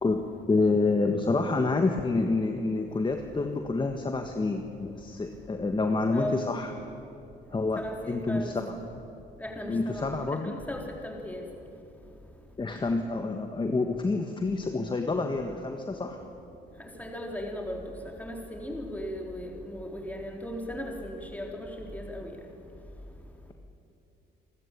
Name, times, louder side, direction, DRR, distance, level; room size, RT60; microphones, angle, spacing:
voice 1, 0.0-6.7 7.5-9.0 9.7-10.5 12.6-16.2, left 3 dB, 25° left, 5 dB, 1.6 m, -28 dB
voice 2, 6.1-6.5 7.8-8.6 9.4-11.4 17.0-22.4, equal, 5° left, 1 dB, 4.2 m, -37 dB
29.0 x 13.5 x 8.6 m, 2.8 s
cardioid pair, 90°, 20 cm